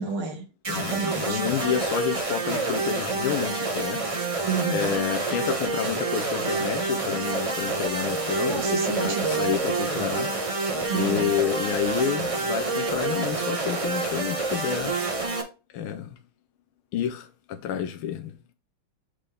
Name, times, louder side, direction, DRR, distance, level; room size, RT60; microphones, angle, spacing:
voice 1, 0.0-1.4 4.4-4.9 8.4-9.5 10.9-11.3, right 4 dB, 90° right, 2.4 m, -30 dB
sound 1, 0.6-15.4, right 3 dB, 25° right, 0.8 m, -28 dB
voice 2, 0.7-4.2 4.7-10.5 10.9-14.9 15.7-16.2 16.9-18.4, left 9 dB, 80° left, 1.5 m, -29 dB
8.2 x 3.8 x 3.4 m
omnidirectional pair, 2.3 m